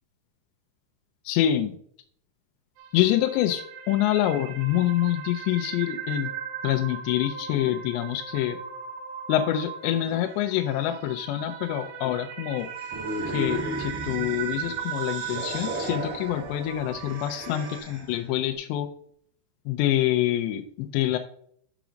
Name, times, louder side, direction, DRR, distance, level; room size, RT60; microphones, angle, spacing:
voice 1, 1.3-1.7 2.9-6.3 6.6-8.6 9.3-12.7 13.3-18.9 19.7-21.2, left 12 dB, 80° left, 4 dB, 2.6 m, -26 dB
sound 1, 2.8-17.8, right 8 dB, 75° right, 2.2 m, -38 dB
sound 2, 12.8-18.2, right 1 dB, 30° right, 1.5 m, -35 dB
7.0 x 6.0 x 5.1 m, 0.63 s
omnidirectional pair, 5.4 m